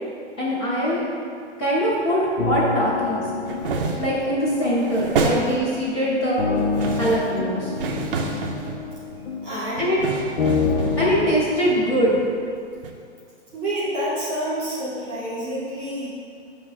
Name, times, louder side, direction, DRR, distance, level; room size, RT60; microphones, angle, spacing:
voice 1, 0.4-1.0 1.6-3.3 4.0-6.4 7.0-7.7 9.8-10.1 11.0-12.2, equal, 20° left, -9 dB, 0.8 m, -22 dB
sound 1, 2.4-11.4, left 4 dB, 65° left, 0.7 m, -28 dB
sound 2, 3.5-4.3 4.6-5.9 6.6-9.2 9.8-12.5 12.8-12.9, right 3 dB, 50° right, 0.7 m, -29 dB
voice 2, 9.4-9.9 13.5-16.1, right 1 dB, 5° right, -12 dB, 0.4 m, -28 dB
6.5 x 3.0 x 5.6 m, 2.2 s
hypercardioid pair, 165°, 36 cm